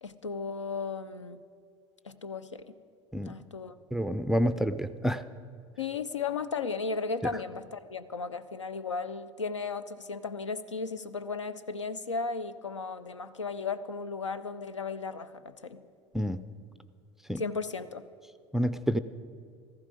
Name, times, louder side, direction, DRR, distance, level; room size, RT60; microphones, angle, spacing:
voice 1, 0.0-1.4 2.0-2.7 3.3-3.7 5.8-15.8 17.4-18.0, left 4 dB, 80° left, 14 dB, 0.6 m, -35 dB
voice 2, 3.9-5.2 16.1-16.4 17.3-17.4 18.5-19.0, equal, ahead, 12 dB, 0.4 m, -28 dB
15.5 x 14.5 x 5.1 m, 2.3 s
figure-of-eight pair, 70°, 15 cm